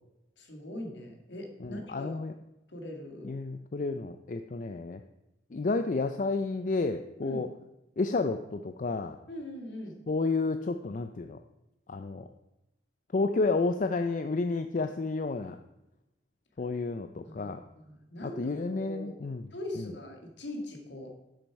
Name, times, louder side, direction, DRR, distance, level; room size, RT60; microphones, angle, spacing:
voice 1, 0.4-2.2 2.7-3.4 7.2-7.4 9.3-10.0 17.2-19.1 19.5-21.1, left 1 dB, 65° left, 3 dB, 1.9 m, -41 dB
voice 2, 1.6-2.3 3.2-5.0 5.5-7.5 8.0-9.2 10.1-11.4 11.9-12.3 13.1-15.6 16.6-17.6 18.2-19.5 19.8-19.9, left 3 dB, 45° left, 8 dB, 0.4 m, -31 dB
10.5 x 7.4 x 4.7 m, 0.92 s
head